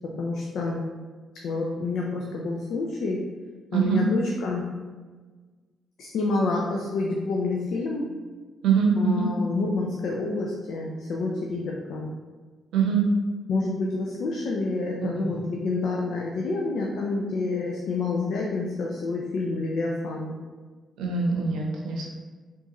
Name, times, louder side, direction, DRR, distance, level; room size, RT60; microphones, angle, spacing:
voice 1, 0.2-0.8 1.4-3.2 3.7-4.7 6.0-8.1 9.0-12.2 13.5-20.4, left 3 dB, 70° left, -1 dB, 0.4 m, -28 dB
voice 2, 3.7-4.1 8.6-9.3 12.7-13.0 15.1-15.5 21.0-22.1, right 6 dB, 80° right, -1 dB, 0.7 m, -24 dB
3.8 x 2.5 x 2.9 m, 1.4 s
supercardioid pair, 50°, 0 cm